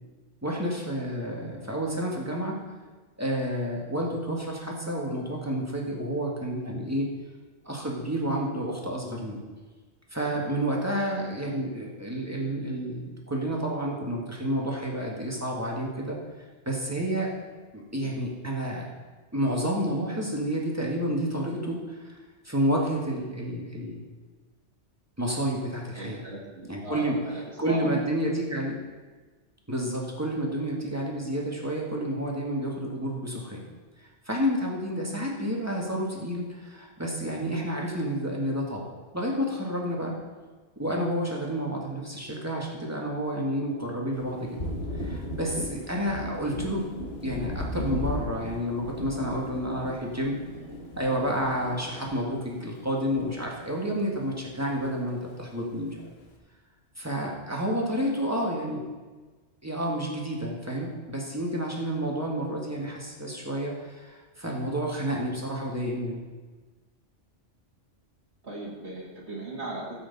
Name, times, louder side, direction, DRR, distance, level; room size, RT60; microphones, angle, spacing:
voice 1, 0.4-2.6 3.2-7.1 7.6-9.4 10.1-16.2 16.7-17.3 17.7-18.9 19.3-22.2 22.4-24.0 25.2-26.2 26.7-27.2 27.6-28.8 29.7-33.6 34.0-38.8 39.1-40.2 40.8-44.6 44.9-46.8 47.2-50.4 51.0-56.1 57.0-58.9 59.6-66.2, equal, 15° right, -2 dB, 1.8 m, -30 dB
voice 2, 25.9-27.9 58.0-58.1 68.4-69.9, right 1 dB, 60° right, -4 dB, 2.2 m, -38 dB
Thunder, 44.1-53.9 54.2-55.3, left 1 dB, 55° left, 1.6 m, -37 dB
15.0 x 7.8 x 4.1 m, 1.3 s
omnidirectional pair, 1.3 m